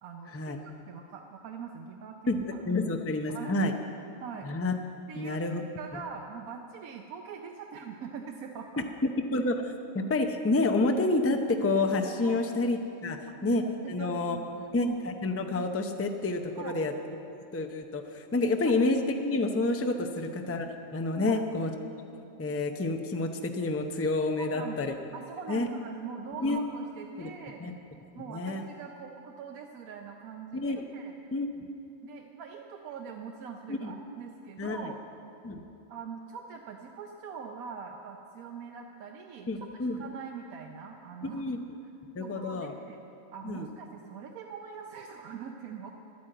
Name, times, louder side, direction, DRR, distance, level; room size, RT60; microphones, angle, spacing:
voice 1, 0.0-0.3 0.6-2.6 3.3-3.7 4.2-4.5 5.1-5.4 5.8-8.8 12.2-12.4 13.3-13.4 13.8-14.7 16.6-16.8 18.6-18.7 21.2-21.4 24.4-27.7 28.1-31.2 32.0-35.0 35.9-41.4 42.2-43.0 43.3-45.9, right 6 dB, 85° right, 2 dB, 1.2 m, -43 dB
voice 2, 2.3-3.7 4.4-4.7 5.2-5.6 9.3-14.4 14.7-16.9 17.5-20.7 20.9-21.7 22.4-24.9 25.5-25.7 26.4-26.6 27.2-27.3 27.6-27.7 28.3-28.7 30.5-30.9 31.3-31.6 33.7-33.9 34.6-34.9 35.4-35.6 39.5-40.0 41.2-41.6 42.1-42.7 43.4-43.7, left 2 dB, 20° left, 5 dB, 0.4 m, -29 dB
11.0 x 9.6 x 7.7 m, 2.8 s
omnidirectional pair, 1.5 m